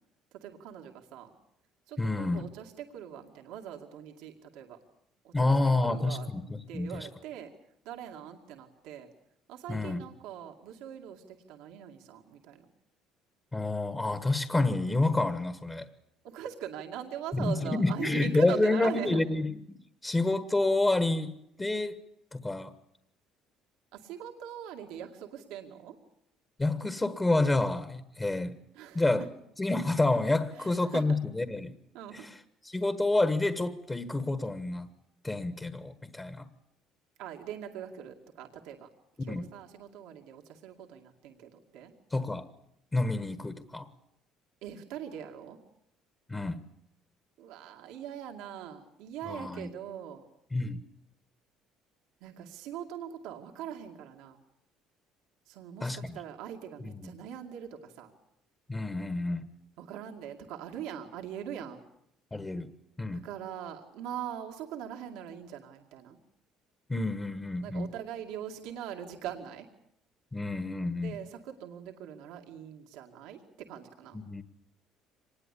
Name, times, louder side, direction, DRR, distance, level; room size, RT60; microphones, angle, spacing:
voice 1, 0.3-1.3 1.9-4.8 5.2-5.5 5.8-6.3 6.7-7.5 7.8-9.1 9.5-12.7 16.2-19.2 23.9-26.0 28.7-29.3 30.5-31.0 31.9-32.3 37.2-38.9 39.2-41.9 44.6-45.6 47.4-50.3 52.2-54.4 55.5-58.1 59.8-61.8 63.1-66.2 67.6-69.7 71.0-73.4 73.7-74.2, right 9 dB, 85° right, 2 dB, 2.3 m, -42 dB
voice 2, 2.0-2.4 5.3-7.1 9.7-10.0 13.5-15.9 17.3-22.0 22.3-22.7 26.6-28.5 28.9-29.3 29.6-31.8 32.1-32.3 32.6-34.9 35.2-36.5 39.2-39.4 42.1-42.5 42.9-43.9 46.3-46.6 49.3-49.7 50.5-50.8 55.8-56.2 56.8-57.1 58.7-59.5 62.3-62.7 63.0-63.2 66.9-67.9 70.3-71.2 74.1-74.4, left 2 dB, 15° left, 11 dB, 1.3 m, -29 dB
25.0 x 20.0 x 8.5 m, 0.75 s
cardioid pair, 115°, 0 cm